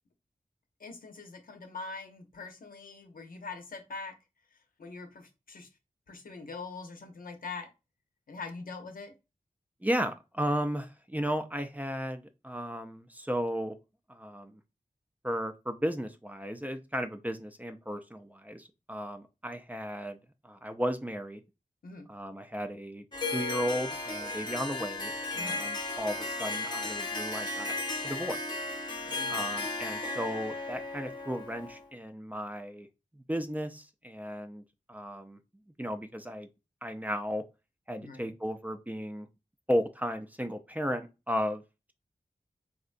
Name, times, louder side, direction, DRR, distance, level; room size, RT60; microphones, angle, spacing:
voice 1, 0.8-4.1 4.5-5.7 6.1-7.7 8.3-9.1 21.8-22.1 25.4-25.6 29.0-29.4 38.0-38.3, left 4 dB, 85° left, 5 dB, 0.7 m, -43 dB
voice 2, 9.8-13.8 14.1-14.6 15.2-20.2 20.4-21.4 22.1-23.1 23.3-27.7 28.0-28.4 29.3-32.9 33.1-34.6 34.9-35.4 35.8-36.5 36.8-37.4 37.9-39.3 39.7-41.6, equal, 10° right, 7 dB, 0.4 m, -34 dB
Harp, 23.1-31.9, left 3 dB, 30° left, 0.8 m, -35 dB
3.7 x 2.2 x 2.5 m, 0.26 s
wide cardioid pair, 60°, 14 cm